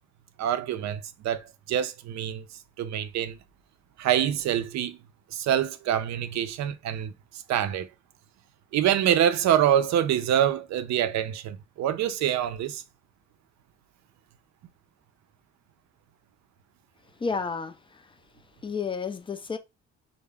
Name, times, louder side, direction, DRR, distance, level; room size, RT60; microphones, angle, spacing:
voice 1, 0.4-2.4 2.8-3.4 4.0-5.0 5.3-7.1 7.5-7.9 8.7-12.8, right 10 dB, 65° right, 0.4 m, -25 dB
voice 2, 17.0-18.2 18.6-19.6, left 5 dB, 20° left, 0.3 m, -32 dB
2.3 x 2.0 x 3.3 m
cardioid pair, 90°, 30 cm